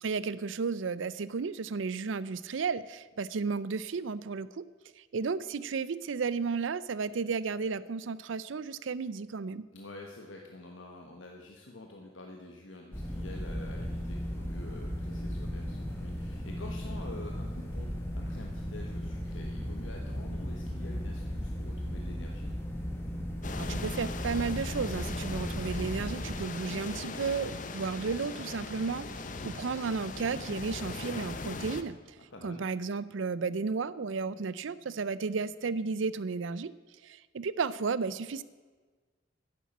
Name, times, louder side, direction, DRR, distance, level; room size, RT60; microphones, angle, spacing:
voice 1, 0.0-4.7 5.0-9.7 23.6-32.2 32.4-36.7 37.0-38.4, right 5 dB, 80° right, 17 dB, 0.5 m, -33 dB
voice 2, 9.7-22.5 32.3-32.6, left 2 dB, 80° left, 1 dB, 1.2 m, -47 dB
sound 1, 12.9-26.4, equal, 10° left, 1.6 m, -36 dB
sound 2, 23.4-31.8, left 3 dB, 40° left, 0.7 m, -39 dB
10.5 x 7.2 x 8.5 m, 1.4 s
head